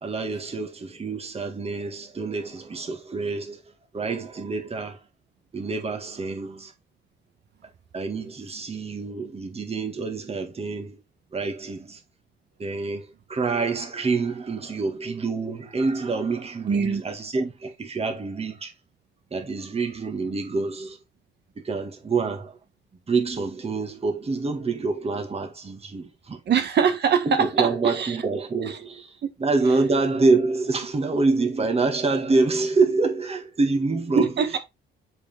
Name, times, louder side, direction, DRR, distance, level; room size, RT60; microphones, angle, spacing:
voice 1, 0.0-3.6 3.9-5.0 5.5-6.7 7.9-11.0 11.3-12.0 12.6-18.7 19.3-21.0 21.6-22.6 23.1-26.4 27.3-29.1 29.4-34.3, right 3 dB, 30° right, 2.0 m, -26 dB
voice 2, 16.7-17.0 26.4-28.2 28.6-28.8 34.1-34.6, right 6 dB, 60° right, 1.5 m, -22 dB
7.0 x 5.3 x 3.5 m
cardioid pair, 90°, 20 cm